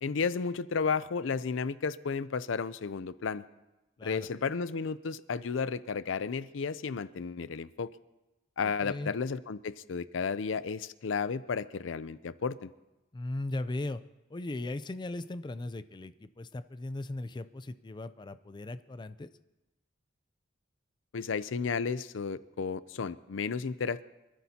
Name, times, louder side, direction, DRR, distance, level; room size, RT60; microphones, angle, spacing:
voice 1, 0.0-3.5 4.0-7.9 8.6-12.7 21.1-24.0, left 5 dB, 85° left, 16 dB, 0.5 m, -33 dB
voice 2, 4.0-4.3 8.6-9.1 13.1-14.0 14.3-19.3, left 2 dB, 25° left, 12 dB, 0.4 m, -38 dB
25.5 x 13.5 x 2.8 m, 1.0 s
head